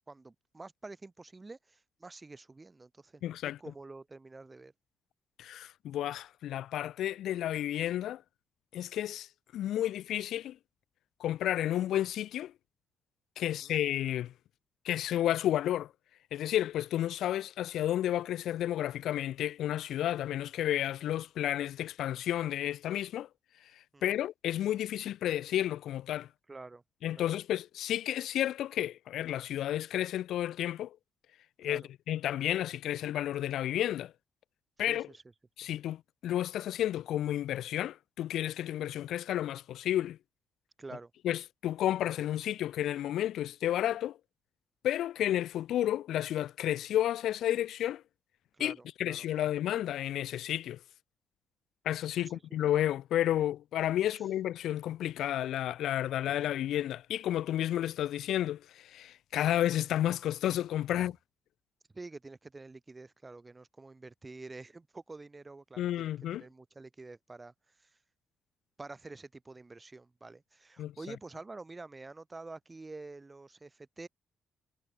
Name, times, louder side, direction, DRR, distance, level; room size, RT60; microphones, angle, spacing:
voice 1, 0.1-4.7 13.4-13.8 23.9-24.2 26.5-26.8 27.1-27.3 31.6-31.9 34.9-35.2 35.6-35.7 40.8-41.1 48.5-49.5 52.2-52.4 54.1-54.2 60.9-61.1 61.9-68.0 68.8-74.1, right 3 dB, 20° right, 1.1 m, -48 dB
voice 2, 3.2-3.6 5.4-8.2 8.7-9.3 9.5-10.6 11.2-12.5 13.4-14.3 14.8-15.9 16.3-23.3 23.7-26.3 27.0-31.0 31.6-34.1 34.8-35.1 35.6-40.2 41.2-44.2 44.8-48.0 48.6-50.8 51.8-61.2 65.8-66.4 70.8-70.9, left 12 dB, 75° left, 0.5 m, -31 dB
cardioid pair, 125°, 0 cm